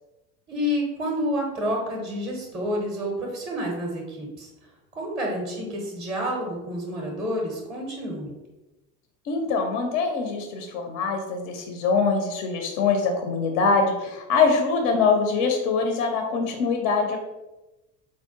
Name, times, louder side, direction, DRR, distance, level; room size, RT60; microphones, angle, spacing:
voice 1, 0.5-4.5 5.0-8.3, equal, 10° right, 0 dB, 0.6 m, -29 dB
voice 2, 9.3-17.2, left 4 dB, 35° left, 3 dB, 0.4 m, -23 dB
4.4 x 2.0 x 2.8 m, 1.0 s
figure-of-eight pair, 70°, 50 cm